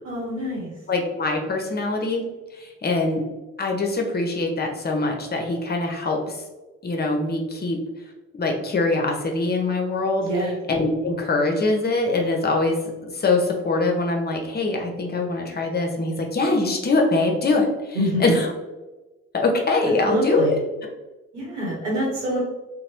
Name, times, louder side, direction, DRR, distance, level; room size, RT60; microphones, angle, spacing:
voice 1, 0.0-0.7 10.2-10.6 17.9-18.4 20.1-20.6 21.3-22.4, equal, 90° right, -6 dB, 0.9 m, -25 dB
voice 2, 0.9-2.2 2.6-3.2 3.6-6.4 6.8-7.8 8.4-10.3 10.7-12.8 13.1-18.5 19.3-20.6, left 3 dB, 30° left, 2 dB, 0.6 m, -23 dB
2.9 x 2.0 x 2.9 m, 1.1 s
hypercardioid pair, 45°, 35 cm